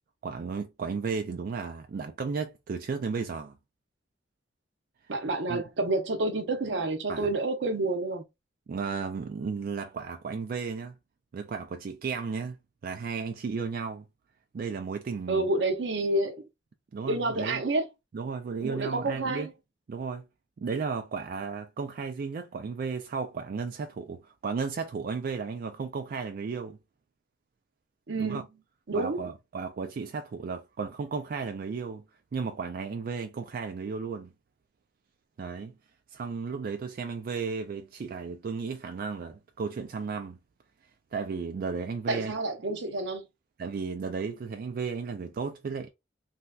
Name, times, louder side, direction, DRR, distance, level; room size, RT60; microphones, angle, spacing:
voice 1, 0.2-3.6 5.5-5.6 7.1-7.3 8.7-11.0 11.3-12.6 12.8-14.0 14.5-15.5 16.9-17.6 18.1-19.5 19.9-20.2 20.6-26.8 28.2-28.4 28.9-32.0 32.3-34.3 35.4-35.8 36.1-40.4 41.1-42.3 43.6-45.9, right 5 dB, 55° right, 0.3 m, -34 dB
voice 2, 5.1-8.2 15.3-16.5 17.1-17.9 18.6-19.5 28.1-28.5 28.9-29.2 42.1-43.3, right 2 dB, 80° right, 0.7 m, -29 dB
3.2 x 2.7 x 2.2 m
head